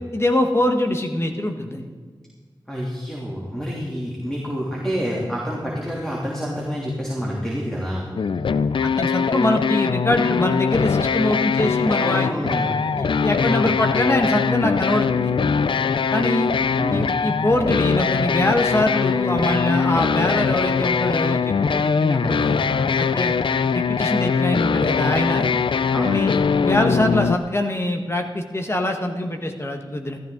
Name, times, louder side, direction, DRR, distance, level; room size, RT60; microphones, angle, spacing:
voice 1, 0.1-1.8 8.8-12.3 13.0-15.3 16.1-16.5 16.9-22.5 23.0-23.3 23.7-25.5 26.0-30.2, left 1 dB, 30° left, 4 dB, 1.5 m, -23 dB
voice 2, 2.7-8.1 11.8-12.9 13.4-13.7 16.8-17.1 22.2-22.6 25.9-26.2, equal, 5° left, -4 dB, 3.1 m, -28 dB
sound 1, 8.2-27.4, left 6 dB, 75° left, 0.4 m, -21 dB
14.5 x 14.0 x 3.9 m, 1.5 s
wide cardioid pair, 60°, 9 cm